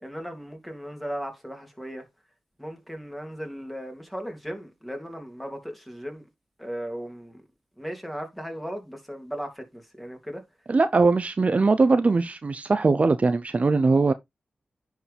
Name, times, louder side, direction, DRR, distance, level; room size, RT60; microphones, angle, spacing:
voice 1, 0.0-2.1 2.6-6.2 6.6-7.4 7.8-10.4, equal, 5° left, 3.1 m, -36 dB
voice 2, 10.7-14.1, right 3 dB, 45° right, 0.6 m, -21 dB
10.0 x 4.8 x 3.4 m
cardioid pair, 60°, 3 cm